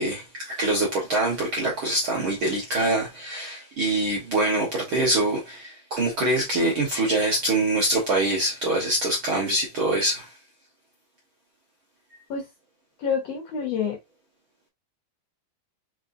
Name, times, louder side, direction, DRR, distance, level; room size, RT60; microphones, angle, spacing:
voice 1, 0.0-10.3, right 2 dB, 55° right, 1.5 m, -24 dB
voice 2, 13.0-14.0, left 6 dB, 60° left, 1.9 m, -27 dB
5.3 x 3.3 x 2.6 m
omnidirectional pair, 4.0 m